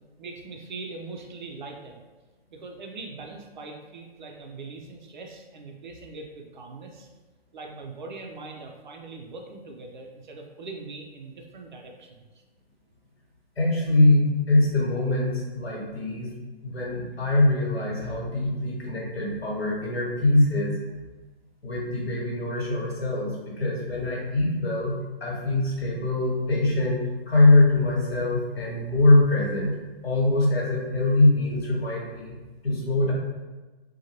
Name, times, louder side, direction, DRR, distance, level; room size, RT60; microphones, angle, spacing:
voice 1, 0.2-2.0 2.5-7.1 7.5-12.2 18.1-18.2, right 3 dB, 50° right, 2 dB, 0.4 m, -41 dB
voice 2, 13.6-16.3 16.6-20.7 21.6-24.9 25.2-27.0 27.3-29.7 30.0-32.3 32.6-33.1, left 2 dB, 70° left, -4 dB, 1.1 m, -23 dB
2.7 x 2.2 x 2.8 m, 1.2 s
figure-of-eight pair, 125°, 31 cm